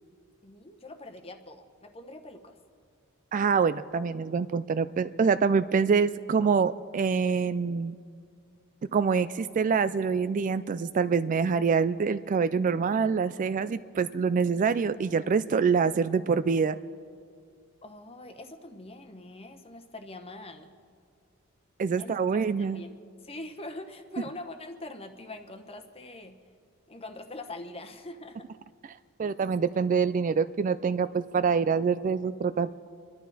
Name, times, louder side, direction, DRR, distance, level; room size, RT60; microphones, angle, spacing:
voice 1, 0.4-2.6 17.8-20.7 22.0-23.0 23.2-26.4 26.9-28.5, left 2 dB, 25° left, 6 dB, 1.0 m, -43 dB
voice 2, 3.3-8.0 8.9-16.8 21.8-22.8 29.2-32.7, right 5 dB, 35° right, 14 dB, 0.3 m, -25 dB
27.5 x 11.5 x 4.0 m, 2.2 s
head